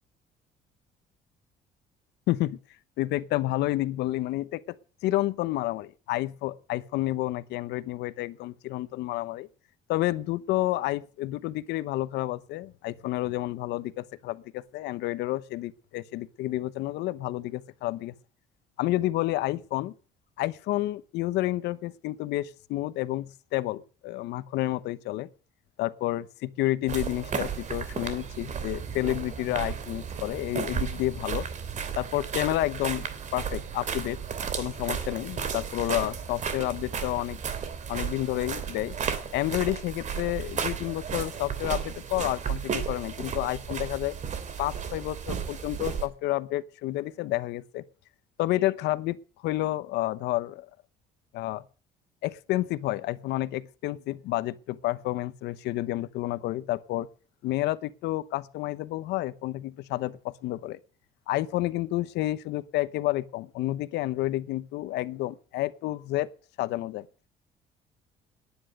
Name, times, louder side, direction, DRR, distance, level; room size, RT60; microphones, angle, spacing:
voice 1, 2.3-2.6 3.0-4.8 5.0-9.5 9.9-18.1 18.8-19.9 20.4-25.3 25.8-31.4 32.0-34.2 34.5-37.4 37.9-38.9 39.3-44.2 44.6-47.8 48.4-49.2 49.4-50.7 51.3-51.6 52.2-57.1 57.4-60.8 61.3-66.3 66.6-67.1, left 16 dB, 85° left, 0.9 m, -30 dB
sound 1, 26.9-46.1, right 7 dB, 45° right, 3.0 m, -34 dB
18.0 x 10.0 x 6.6 m
cardioid pair, 110°, 17 cm